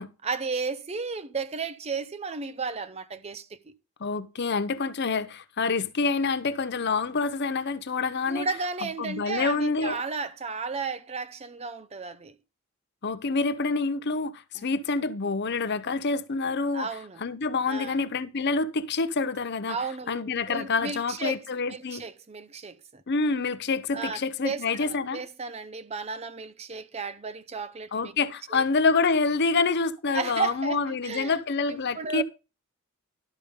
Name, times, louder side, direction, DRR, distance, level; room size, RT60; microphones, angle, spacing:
voice 1, 0.2-3.7 8.3-12.3 14.6-14.7 16.7-17.2 17.7-18.0 19.7-21.4 21.7-23.0 23.9-28.1 28.5-28.6 30.1-31.4 31.7-32.2, right 4 dB, 30° right, 0.5 m, -34 dB
voice 2, 4.0-8.5 9.0-10.0 13.0-16.9 17.2-19.8 20.1-22.0 23.1-25.2 27.9-32.2, left 4 dB, 50° left, 0.6 m, -27 dB
12.0 x 5.1 x 5.2 m
head